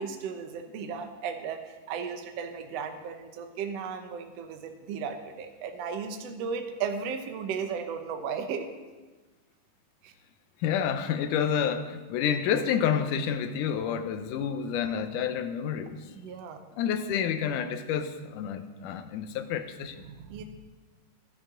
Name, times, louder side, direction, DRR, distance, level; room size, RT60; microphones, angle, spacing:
voice 1, 0.0-8.7 10.0-10.1 16.2-16.6 20.0-20.4, right 6 dB, 65° right, 6 dB, 1.7 m, -35 dB
voice 2, 10.6-16.0 16.7-20.0, left 8 dB, 80° left, 8 dB, 2.2 m, -29 dB
13.0 x 11.5 x 3.8 m, 1.2 s
omnidirectional pair, 3.7 m